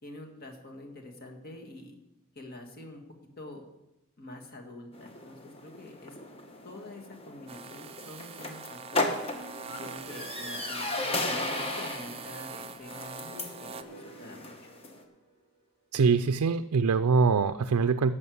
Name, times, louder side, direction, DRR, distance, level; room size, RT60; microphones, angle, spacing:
voice 1, 0.0-2.0 2.4-3.0 3.4-3.6 4.2-6.2 6.6-9.2 9.7-14.7, left 2 dB, 45° left, 2 dB, 1.9 m, -46 dB
sound 1, 4.9-15.0, left 2 dB, 25° left, 1.1 m, -36 dB
sound 2, 7.5-13.8, right 6 dB, 25° right, 0.5 m, -43 dB
sound 3, 9.3-12.2 12.8-15.7, right 1 dB, 75° left, 2.5 m, -51 dB
voice 2, 15.9-18.1, right 5 dB, 90° right, 11 dB, 0.4 m, -24 dB
11.0 x 6.5 x 7.9 m, 0.92 s
head